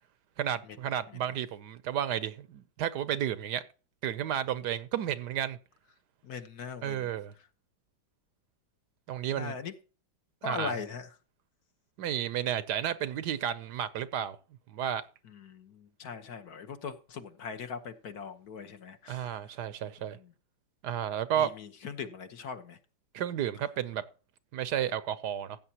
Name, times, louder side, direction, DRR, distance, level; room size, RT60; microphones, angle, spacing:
voice 1, 0.4-3.6 4.0-5.6 6.8-7.3 9.1-9.6 10.4-10.8 12.0-14.4 14.7-15.0 19.1-20.2 20.8-21.5 23.1-24.0 24.5-25.6, right 10 dB, 70° right, 1.2 m, -32 dB
voice 2, 6.2-7.1 9.4-9.7 10.4-11.1 15.2-19.3 20.1-20.3 21.4-22.8, left 5 dB, 60° left, 1.5 m, -40 dB
15.5 x 8.7 x 2.9 m
omnidirectional pair, 2.0 m